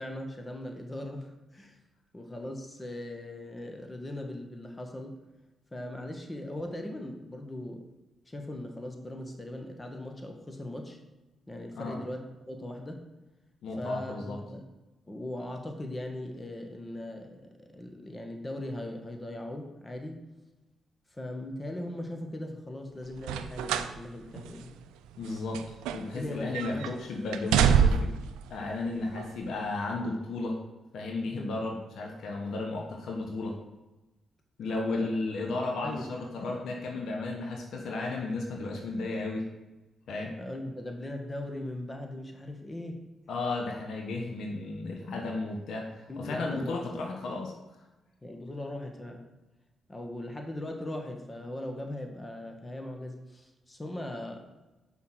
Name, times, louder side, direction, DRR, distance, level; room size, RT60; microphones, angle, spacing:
voice 1, 0.0-1.8 2.1-5.2 5.7-7.8 8.3-11.0 11.5-13.1 13.8-14.6 15.1-20.2 21.2-24.7 26.1-26.9 27.2-27.3 31.3-31.5 34.9-35.1 35.8-36.3 40.4-43.1 46.1-46.9 48.2-49.2 49.9-54.4, left 1 dB, 25° left, 3 dB, 1.7 m, -39 dB
voice 2, 13.6-14.4 25.2-28.1 28.5-30.6 30.9-33.6 34.6-39.5 40.1-40.3 43.3-47.5, left 2 dB, 70° left, 1 dB, 1.1 m, -34 dB
sound 1, 23.2-24.0 24.4-24.5 25.2-26.3 26.5-26.9 27.3-28.3 29.1-29.3, right 7 dB, 85° right, 0.4 m, -25 dB
5.7 x 5.7 x 6.3 m, 1.1 s
hypercardioid pair, 45°, 0 cm